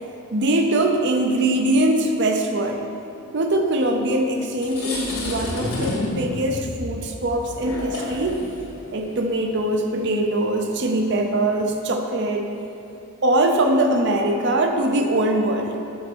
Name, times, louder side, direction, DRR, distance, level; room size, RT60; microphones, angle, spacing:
voice 1, 0.3-2.8 3.3-8.5 8.9-12.5 13.2-15.8, right 1 dB, 55° right, 4 dB, 0.6 m, -22 dB
sound 1, 3.9-4.1 4.4-11.7, left 1 dB, 90° left, 1.9 m, -34 dB
CP Subby Whoosh, 4.8-8.6, left 2 dB, 35° left, 0.4 m, -32 dB
7.1 x 5.4 x 6.1 m, 2.7 s
head